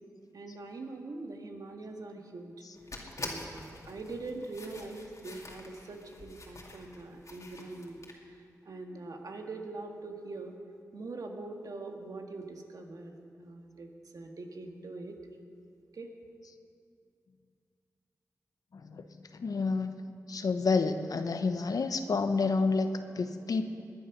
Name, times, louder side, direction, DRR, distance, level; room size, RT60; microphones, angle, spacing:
voice 1, 0.3-2.5 3.2-8.0 8.7-10.5 10.9-13.9 14.1-15.2 15.9-16.1, right 3 dB, 70° right, 3 dB, 1.7 m, -43 dB
sound 1, 2.7-8.1, left 2 dB, 55° left, 2.4 m, -46 dB
voice 2, 18.7-19.0 19.3-19.9 20.3-23.6, left 4 dB, 75° left, 8 dB, 1.0 m, -29 dB
20.5 x 10.0 x 6.0 m, 2.4 s
cardioid pair, 50°, 6 cm